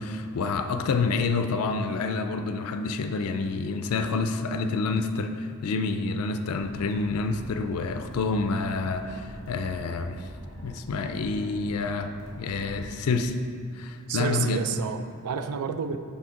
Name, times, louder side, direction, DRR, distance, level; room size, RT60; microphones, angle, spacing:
voice 1, 0.0-10.2 10.6-12.1 12.4-13.3 13.8-14.6, left 4 dB, 75° left, 7 dB, 0.4 m, -28 dB
sound 1, 6.5-13.0, equal, 65° right, 1.7 m, -44 dB
voice 2, 14.1-16.0, right 6 dB, 90° right, 9 dB, 0.4 m, -30 dB
6.2 x 4.2 x 5.7 m, 2.3 s
head